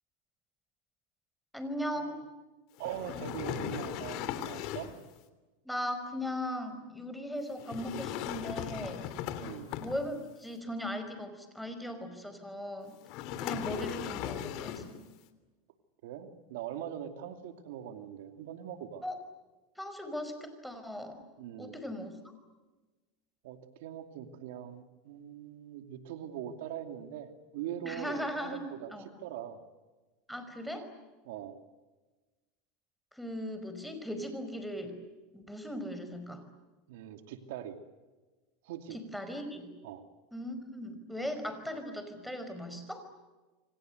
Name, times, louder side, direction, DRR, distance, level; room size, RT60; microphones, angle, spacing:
voice 1, 1.5-2.2 5.6-9.0 9.8-13.0 13.4-15.0 19.0-19.2 19.8-21.2 21.6-22.1 27.8-28.6 28.9-29.1 30.3-30.9 33.1-34.9 35.3-36.4 38.9-39.7 40.3-43.1, equal, ahead, 7 dB, 5.1 m, -38 dB
sound 1, 2.8-5.0 7.6-10.3 13.0-15.0, left 10 dB, 55° left, 3.0 m, -38 dB
voice 2, 2.8-4.9 9.4-9.7 16.0-19.0 21.4-21.8 23.4-28.9 29.2-29.6 31.2-31.6 36.9-37.8 38.6-39.0 39.8-40.0, right 10 dB, 75° right, 7 dB, 2.6 m, -42 dB
28.0 x 25.5 x 8.0 m, 1.2 s
supercardioid pair, 125°, 0 cm